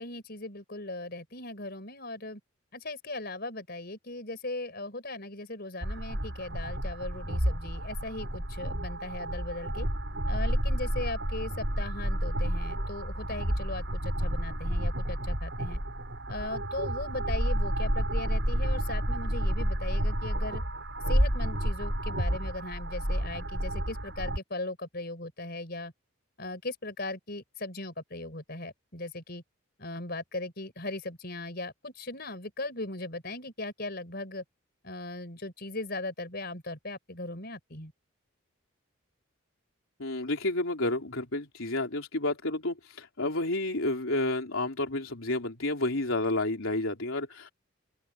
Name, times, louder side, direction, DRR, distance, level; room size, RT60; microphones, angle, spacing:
voice 1, 0.0-2.4 2.7-9.9 10.3-15.8 16.3-20.6 21.1-25.9 26.4-29.4 29.8-34.4 34.8-37.9, left 2 dB, 45° left, 5.1 m, -38 dB
sound 1, 5.8-24.4, equal, 55° right, 7.2 m, -30 dB
voice 2, 40.0-47.5, left 2 dB, 70° left, 3.4 m, -30 dB
open air
head